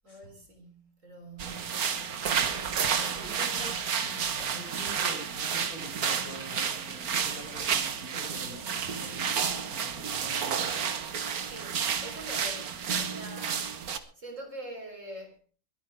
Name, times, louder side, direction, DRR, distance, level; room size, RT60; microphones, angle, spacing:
voice 1, 0.0-2.4 2.7-4.0 4.4-4.6 11.2-15.4, right 1 dB, 55° right, 4.4 m, -46 dB
sound 1, 1.4-14.0, right 7 dB, 75° right, 1.8 m, -31 dB
voice 2, 3.2-4.2 4.5-10.7, equal, 35° left, 5.7 m, -46 dB
22.5 x 9.5 x 4.8 m
omnidirectional pair, 1.6 m